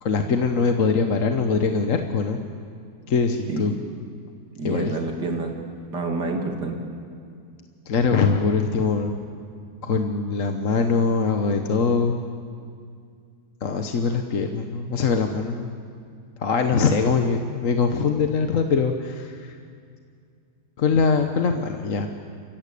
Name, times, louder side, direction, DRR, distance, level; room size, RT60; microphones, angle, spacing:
voice 1, 0.0-2.4 3.1-3.7 4.6-5.0 7.9-9.1 9.8-12.2 13.6-15.7 16.4-19.6 20.8-22.1, left 5 dB, 55° left, 5 dB, 1.4 m, -22 dB
voice 2, 4.6-5.6 5.9-6.8, right 3 dB, 80° right, 3 dB, 3.1 m, -28 dB
30.0 x 15.0 x 8.5 m, 2.2 s
omnidirectional pair, 1.8 m